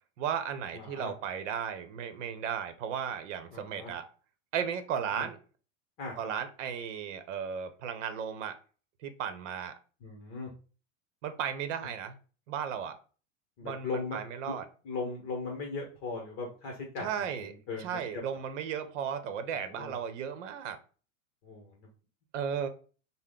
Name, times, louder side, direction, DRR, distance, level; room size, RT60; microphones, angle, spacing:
voice 1, 0.2-4.0 4.5-5.4 6.2-8.5 9.0-9.7 11.2-12.1 12.5-12.9 13.6-14.7 17.0-17.5 17.8-20.8 22.3-22.7, right 8 dB, 75° right, 0.8 m, -35 dB
voice 2, 0.7-1.1 3.5-3.9 5.2-5.3 6.0-6.2 10.0-10.5 13.6-14.2 14.5-14.6 14.8-17.1 17.7-18.0 19.5-19.9 21.4-21.7, left 4 dB, 35° left, 0.9 m, -38 dB
5.6 x 2.1 x 3.6 m
supercardioid pair, 165°, 37 cm